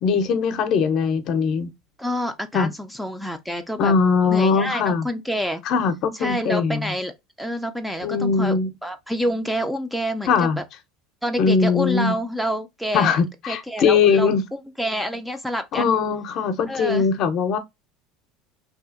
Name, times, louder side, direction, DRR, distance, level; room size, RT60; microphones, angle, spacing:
voice 1, 0.0-1.7 2.5-2.7 3.8-5.1 5.7-6.9 8.0-8.7 10.3-10.6 11.4-12.2 12.9-14.4 15.7-17.6, left 5 dB, 50° left, 0.5 m, -20 dB
voice 2, 2.0-3.9 4.3-5.6 6.1-10.6 11.2-13.2 13.5-15.9 16.7-17.1, equal, ahead, 0.3 m, -28 dB
2.7 x 2.4 x 2.4 m
supercardioid pair, 120°, 0 cm